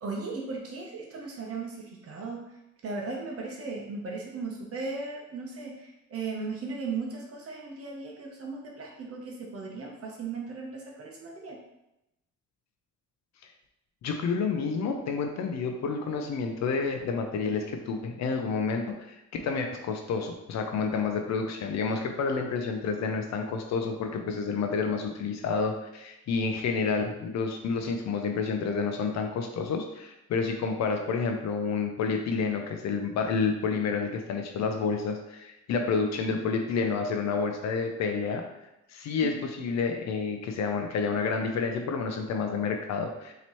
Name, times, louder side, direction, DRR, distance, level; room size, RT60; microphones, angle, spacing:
voice 1, 0.0-2.6 2.8-11.6 39.2-39.4, right 4 dB, 50° right, -1 dB, 0.8 m, -37 dB
voice 2, 14.0-38.4 38.9-43.3, left 5 dB, 65° left, 4 dB, 0.5 m, -29 dB
4.2 x 2.9 x 3.0 m, 0.89 s
cardioid pair, 90°, 30 cm